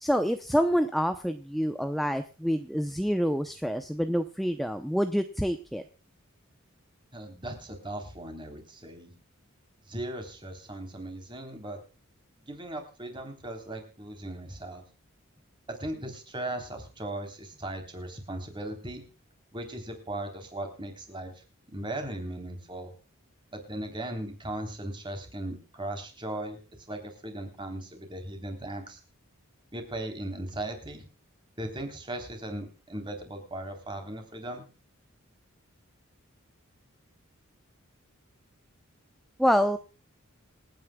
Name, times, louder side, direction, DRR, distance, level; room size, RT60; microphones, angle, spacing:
voice 1, 0.0-5.8 39.4-39.8, equal, ahead, 8 dB, 0.6 m, -27 dB
voice 2, 7.1-9.1 9.9-11.8 12.5-14.8 15.7-19.0 19.5-21.4 21.7-22.9 23.5-26.6 26.9-29.0 29.7-31.0 31.6-34.6, right 1 dB, 20° right, 5 dB, 3.5 m, -38 dB
27.0 x 9.5 x 2.3 m, 0.34 s
head